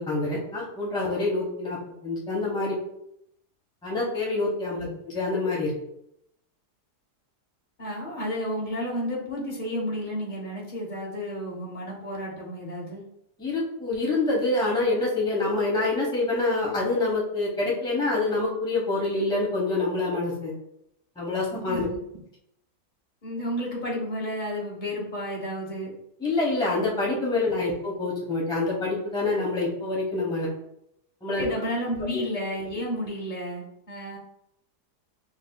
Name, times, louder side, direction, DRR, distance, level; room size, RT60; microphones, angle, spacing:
voice 1, 0.0-2.8 3.8-5.8 13.4-20.6 21.2-21.9 26.2-30.5 31.2-31.5 32.0-32.1, left 2 dB, 5° left, -4 dB, 0.6 m, -26 dB
voice 2, 7.8-13.0 21.7-21.8 23.2-25.9 31.3-34.2, equal, 35° left, -3 dB, 1.0 m, -32 dB
5.2 x 2.7 x 2.2 m, 0.78 s
omnidirectional pair, 1.7 m